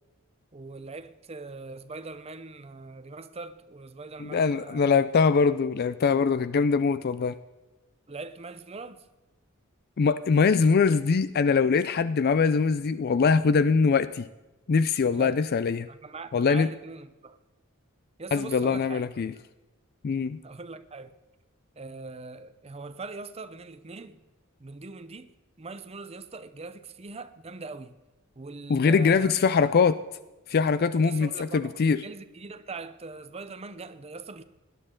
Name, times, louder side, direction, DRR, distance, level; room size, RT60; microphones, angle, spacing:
voice 1, 0.5-5.0 8.1-9.1 15.1-15.4 15.9-17.4 18.2-19.0 20.4-21.1 21.8-24.2 24.6-25.3 25.6-28.0 28.4-29.3 30.9-34.4, right 3 dB, 30° right, 0.7 m, -41 dB
voice 2, 4.2-7.4 10.0-14.3 14.7-15.9 16.3-16.7 18.3-19.3 20.0-20.4 28.7-30.0 30.5-32.0, left 5 dB, 45° left, 0.4 m, -23 dB
18.0 x 11.0 x 3.8 m
head